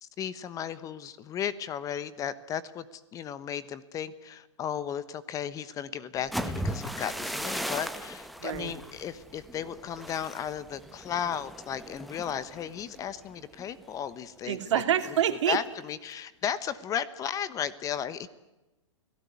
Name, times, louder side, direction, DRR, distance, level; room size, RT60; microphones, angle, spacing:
voice 1, 0.0-14.6 15.3-18.3, left 9 dB, 20° left, 17 dB, 1.0 m, -35 dB
sound 1, 6.2-14.0 14.4-14.7 15.1-15.5, equal, ahead, 1.3 m, -38 dB
voice 2, 8.4-8.7 14.5-15.6, right 10 dB, 65° right, 9 dB, 2.8 m, -27 dB
29.5 x 18.0 x 9.5 m, 1.0 s
hypercardioid pair, 140°, 17 cm